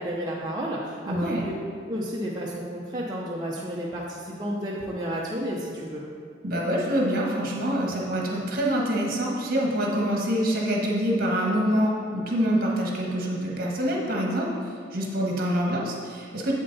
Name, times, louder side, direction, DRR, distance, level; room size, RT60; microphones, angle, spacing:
voice 1, 0.0-1.5 1.9-6.0, equal, 20° right, -5 dB, 0.7 m, -31 dB
voice 2, 1.1-1.4 6.4-14.5 14.9-16.5, equal, 50° right, -2 dB, 1.5 m, -25 dB
7.8 x 7.3 x 4.0 m, 2.3 s
head